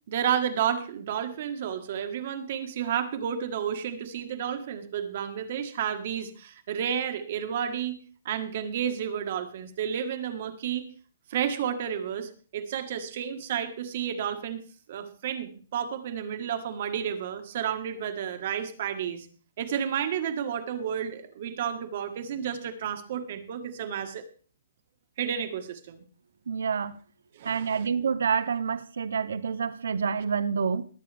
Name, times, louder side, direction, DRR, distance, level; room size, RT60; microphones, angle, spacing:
voice 1, 0.1-8.0 8.2-10.9 11.3-14.6 14.9-19.3 19.6-24.2 25.2-26.0 27.3-27.9, right 8 dB, 40° right, 1.4 m, -31 dB
voice 2, 26.5-26.9 27.4-30.8, right 6 dB, 75° right, 0.8 m, -28 dB
20.5 x 8.7 x 3.4 m
hypercardioid pair, 175°, 0 cm